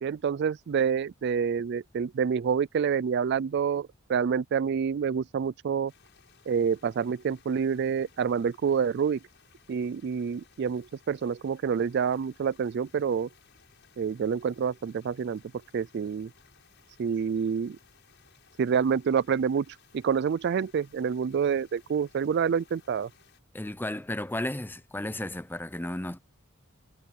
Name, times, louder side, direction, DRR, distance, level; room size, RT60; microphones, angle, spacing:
voice 1, 0.0-5.9 6.5-9.2 9.7-13.3 14.0-15.4 15.7-16.3 17.0-17.8 18.6-23.1, right 6 dB, 55° right, 0.3 m, -27 dB
sound 1, 5.9-23.4, left 7 dB, 60° left, 7.3 m, -61 dB
voice 2, 23.5-26.2, left 1 dB, 10° left, 0.7 m, -33 dB
head